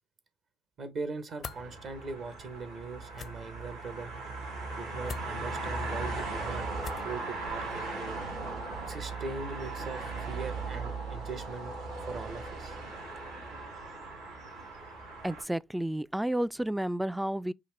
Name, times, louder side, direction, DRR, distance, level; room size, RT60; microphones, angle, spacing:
voice 1, 0.8-4.1 4.7-6.7 6.9-8.2 8.9-12.8, right 3 dB, 60° right, 1.0 m, -40 dB
sound 1, 1.4-1.6 3.1-3.3 5.0-5.3 6.8-7.1, left 6 dB, 50° left, 0.5 m, -42 dB
sound 2, 1.4-15.4, right 3 dB, 90° right, 3.5 m, -38 dB
voice 2, 15.2-17.5, right 1 dB, 5° right, 0.3 m, -31 dB
5.7 x 2.4 x 3.3 m
hypercardioid pair, 55°, 0 cm